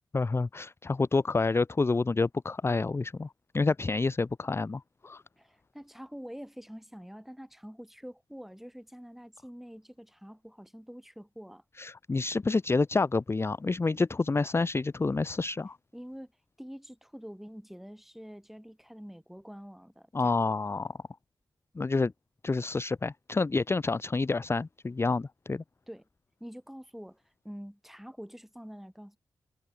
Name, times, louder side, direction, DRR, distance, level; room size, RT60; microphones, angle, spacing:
voice 1, 0.1-5.2 11.8-15.8 20.1-20.9 21.8-22.1 22.4-25.6, left 3 dB, 30° left, 0.5 m, -28 dB
voice 2, 5.4-11.6 15.9-16.3 16.6-20.6 25.9-26.1 26.4-29.2, equal, 5° right, 7.0 m, -46 dB
cardioid pair, 45°, 9 cm